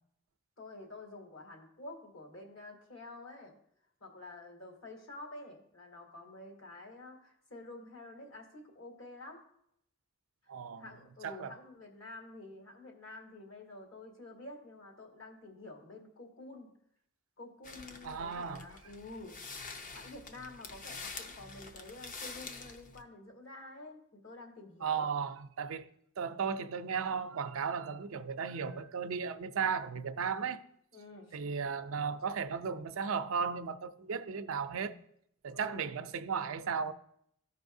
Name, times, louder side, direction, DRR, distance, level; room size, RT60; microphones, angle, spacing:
voice 1, 0.6-3.6 4.0-9.4 10.4-10.5 10.8-16.7 17.4-19.5 19.9-25.1 30.9-31.4 35.5-35.9, left 2 dB, 70° left, 2.2 m, -49 dB
voice 2, 10.5-10.9 11.2-11.5 18.0-18.6 24.8-25.9 26.2-30.6 31.3-34.9 35.4-36.9, right 6 dB, 80° right, 0.5 m, -35 dB
sound 1, 17.6-23.0, left 4 dB, 40° left, 0.6 m, -47 dB
14.5 x 5.3 x 2.7 m
head